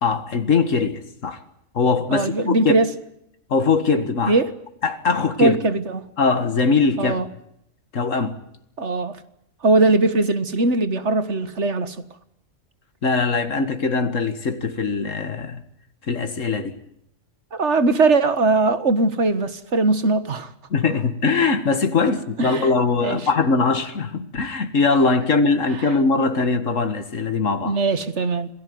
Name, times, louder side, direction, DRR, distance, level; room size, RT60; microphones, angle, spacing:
voice 1, 0.0-1.4 1.7-2.8 3.5-4.4 4.8-5.6 6.2-7.2 7.9-8.4 13.0-15.6 16.1-16.8 20.7-27.8, left 4 dB, 85° left, 2.1 m, -21 dB
voice 2, 2.1-2.9 4.3-4.5 5.4-6.1 7.0-7.3 8.8-9.2 9.6-12.0 17.5-20.5 22.4-22.7 23.0-23.2 27.7-28.5, right 3 dB, 65° right, 2.0 m, -20 dB
27.0 x 18.0 x 9.5 m
omnidirectional pair, 1.3 m